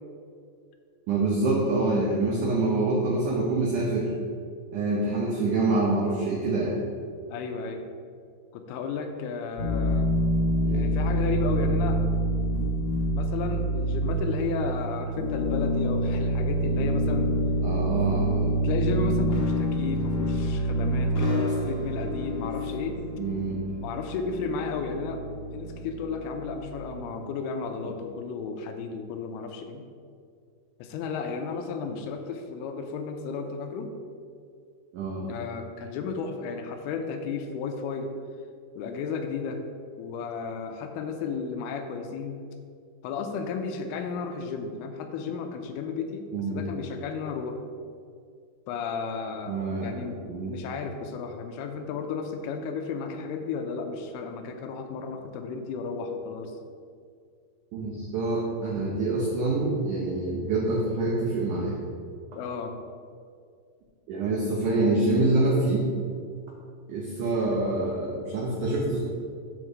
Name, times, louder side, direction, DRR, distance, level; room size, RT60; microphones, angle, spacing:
voice 1, 1.1-4.1 4.7-6.7 10.6-10.9 17.6-18.6 23.2-23.6 34.9-35.3 46.3-46.6 49.5-50.5 57.7-61.8 64.1-65.8 66.9-69.0, right 2 dB, 70° right, -3 dB, 2.0 m, -26 dB
voice 2, 7.3-7.8 8.5-10.1 10.7-12.0 13.1-17.3 18.6-23.0 23.8-25.2 25.5-29.9 30.8-33.9 35.3-38.1 38.8-39.6 40.0-42.4 43.0-47.6 48.7-56.6 62.3-62.8, left 5 dB, 85° left, 6 dB, 2.6 m, -33 dB
sound 1, 9.6-27.0, right 1 dB, 55° left, 2.3 m, -27 dB
8.0 x 4.5 x 6.2 m, 2.3 s
omnidirectional pair, 4.6 m